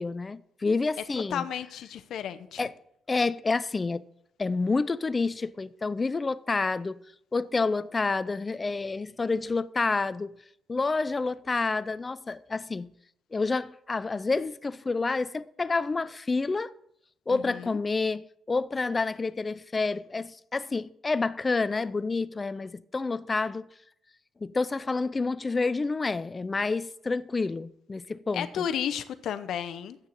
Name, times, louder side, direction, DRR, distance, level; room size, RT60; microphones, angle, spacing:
voice 1, 0.0-1.5 2.6-2.7 3.1-4.0 4.4-7.0 7.3-10.3 10.7-12.9 13.3-16.7 17.3-23.7 24.4-28.7, left 3 dB, 25° left, 0.5 m, -29 dB
voice 2, 1.3-2.7 17.3-17.8 28.3-30.0, left 9 dB, 75° left, 0.7 m, -33 dB
8.3 x 6.5 x 7.3 m
cardioid pair, 90°, 0 cm